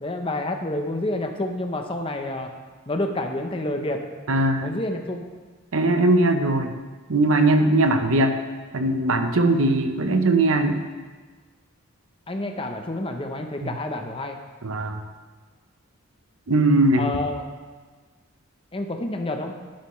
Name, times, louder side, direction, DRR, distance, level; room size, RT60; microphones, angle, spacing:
voice 1, 0.0-2.5 2.9-4.0 4.6-5.3 12.3-14.4 17.0-17.4 18.7-19.6, left 1 dB, 25° left, 4 dB, 0.7 m, -28 dB
voice 2, 4.3-4.7 5.7-6.7 7.1-8.4 8.7-10.8 13.6-13.7 14.6-15.0 16.5-17.1, right 2 dB, 70° right, 7 dB, 0.8 m, -20 dB
11.5 x 10.5 x 3.1 m, 1.4 s
head